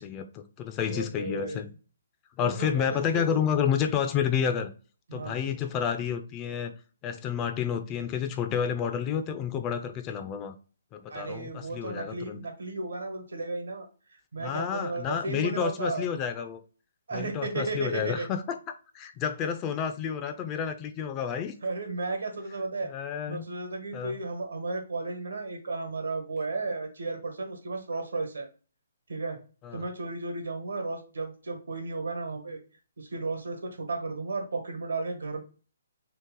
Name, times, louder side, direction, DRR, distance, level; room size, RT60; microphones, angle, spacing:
voice 1, 0.0-1.7 2.4-4.7 5.1-6.7 7.0-10.6 10.9-12.4 14.4-16.6 17.1-18.6 18.9-21.5 22.8-23.5 23.9-24.2 29.6-29.8, left 8 dB, 25° left, 0.4 m, -30 dB
voice 2, 0.8-1.7 2.4-3.4 5.1-5.5 11.1-16.0 17.1-18.3 21.6-22.9 23.3-28.5 29.1-29.4 29.7-32.6 33.0-35.4, right 3 dB, 80° right, 1.1 m, -34 dB
3.0 x 2.4 x 3.6 m
figure-of-eight pair, 135°, 0 cm